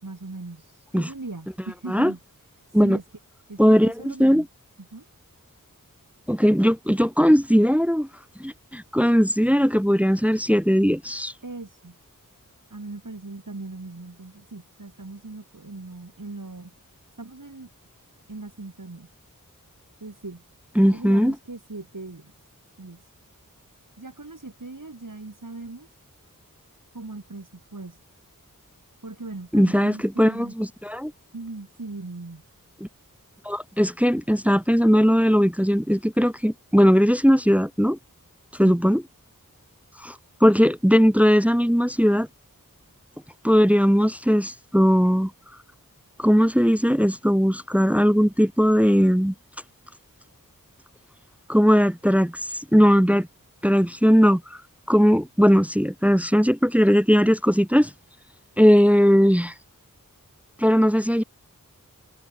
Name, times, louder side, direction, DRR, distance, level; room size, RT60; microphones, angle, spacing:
voice 1, 0.0-2.2 2.7-3.0 3.5-4.5 4.8-5.0 11.4-12.0 12.7-16.7 17.2-17.7 18.3-19.1 20.0-20.4 20.9-22.3 22.8-23.1 24.0-26.0 26.9-28.0 29.0-30.5 31.3-32.4 38.5-38.8, right 3 dB, 65° right, 4.4 m, -39 dB
voice 2, 3.6-4.4 6.3-8.1 8.4-11.3 20.8-21.3 29.5-31.1 32.8-32.9 33.5-38.0 38.6-39.0 40.0-40.2 40.4-42.3 43.4-45.3 46.2-49.3 51.5-53.3 53.6-54.4 54.9-57.9 58.6-59.5 60.6-61.2, equal, 5° right, 0.4 m, -19 dB
wide cardioid pair, 45°, 34 cm